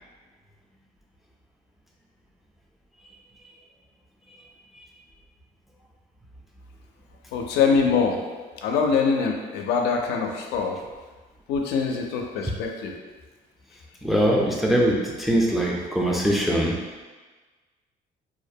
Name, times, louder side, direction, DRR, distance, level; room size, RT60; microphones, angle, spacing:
voice 1, 7.3-8.2 8.5-10.8 11.5-12.9, left 5 dB, 80° left, 2 dB, 0.4 m, -24 dB
voice 2, 14.0-16.8, right 1 dB, ahead, -2 dB, 0.3 m, -22 dB
2.4 x 2.1 x 2.6 m, 1.3 s
cardioid pair, 110°, 17 cm